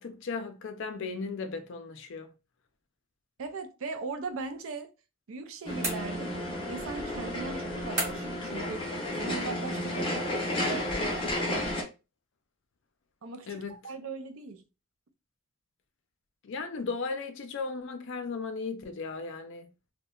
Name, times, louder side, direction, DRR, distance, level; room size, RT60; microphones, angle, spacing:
voice 1, 0.0-2.3 13.5-13.7 16.4-19.7, left 4 dB, 55° left, 0.4 m, -36 dB
voice 2, 3.4-4.9 5.3-6.3 6.7-8.9 9.2-10.9 13.2-14.6, right 3 dB, 65° right, 0.4 m, -39 dB
sound 1, 5.7-11.8, left 1 dB, 25° left, 0.7 m, -32 dB
sound 2, 5.8-6.6 8.0-8.5, right 2 dB, 30° right, 1.2 m, -34 dB
2.7 x 2.1 x 2.2 m
head